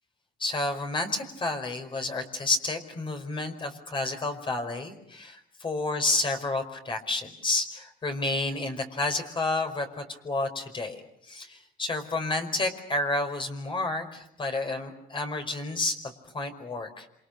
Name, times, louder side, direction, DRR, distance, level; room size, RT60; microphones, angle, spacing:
voice 1, 0.4-15.9 16.3-17.1, left 2 dB, 30° left, 5 dB, 5.0 m, -30 dB
28.0 x 26.5 x 6.7 m, 0.75 s
cardioid pair, 110°, 17 cm